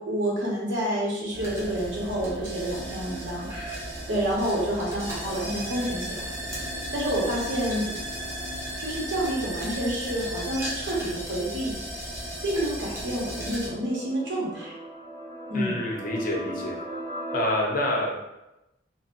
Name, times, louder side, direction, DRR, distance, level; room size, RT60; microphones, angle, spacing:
voice 1, 0.0-6.2 6.7-7.9 8.8-11.8 12.4-14.7 15.5-15.8, right 1 dB, 65° right, -4 dB, 1.0 m, -29 dB
sound 1, 1.3-13.7, equal, 15° right, 0.8 m, -35 dB
sound 2, 11.9-17.4, right 1 dB, 30° right, 1.2 m, -40 dB
voice 2, 15.5-16.8 17.3-18.2, left 1 dB, 45° left, -1 dB, 0.6 m, -27 dB
4.0 x 2.1 x 2.5 m, 0.94 s
head